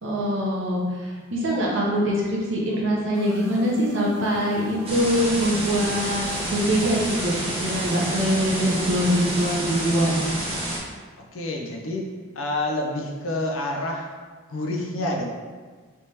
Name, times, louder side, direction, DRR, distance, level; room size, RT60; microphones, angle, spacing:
voice 1, 0.0-10.2, equal, 60° right, -4 dB, 0.8 m, -23 dB
sound 1, 3.1-9.6, left 1 dB, 10° left, 0.5 m, -43 dB
sound 2, 4.9-10.8, right 1 dB, 25° right, 0.6 m, -29 dB
voice 2, 11.3-12.1 12.4-14.1 14.5-15.3, left 1 dB, 70° left, 0 dB, 0.6 m, -28 dB
3.4 x 3.2 x 2.8 m, 1.5 s
head